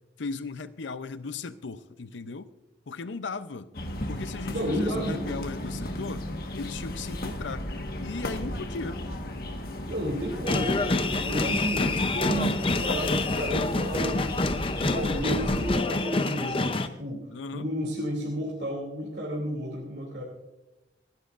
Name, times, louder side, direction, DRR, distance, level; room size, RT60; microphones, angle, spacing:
voice 1, 0.2-2.5 2.9-3.7 4.1-6.3 6.5-7.7 8.0-9.0 17.3-17.7, left 4 dB, 85° left, 13 dB, 0.6 m, -37 dB
sound 1, 3.7-15.8, left 1 dB, 55° left, 1.4 m, -35 dB
voice 2, 4.5-5.4 9.9-14.3 14.8-20.2, equal, 70° right, -3 dB, 2.6 m, -32 dB
sound 2, 10.5-16.9, left 2 dB, 30° left, 0.6 m, -27 dB
28.0 x 10.5 x 2.5 m, 1.0 s
head